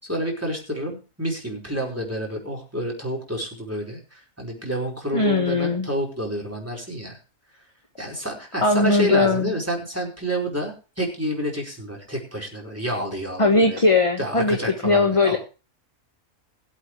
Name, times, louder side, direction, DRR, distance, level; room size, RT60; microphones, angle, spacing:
voice 1, 0.0-7.2 7.5-7.6 8.0-13.8 14.2-15.4, right 1 dB, 10° right, 0 dB, 4.7 m, -29 dB
voice 2, 5.1-5.9 8.6-9.5 13.4-14.6 14.8-15.4, left 3 dB, 25° left, 5 dB, 1.4 m, -19 dB
22.0 x 8.3 x 3.2 m, 0.33 s
omnidirectional pair, 1.4 m